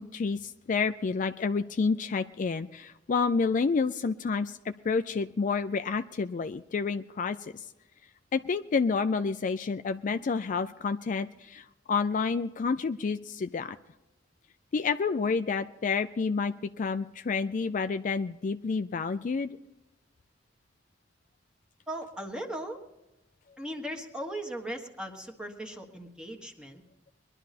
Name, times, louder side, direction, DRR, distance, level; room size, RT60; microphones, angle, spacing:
voice 1, 0.0-7.7 8.3-13.8 14.7-19.6, left 4 dB, 45° left, 10 dB, 0.4 m, -29 dB
voice 2, 21.9-22.8 23.6-26.8, right 1 dB, 5° right, 2 dB, 1.5 m, -38 dB
21.5 x 11.5 x 4.2 m, 0.97 s
head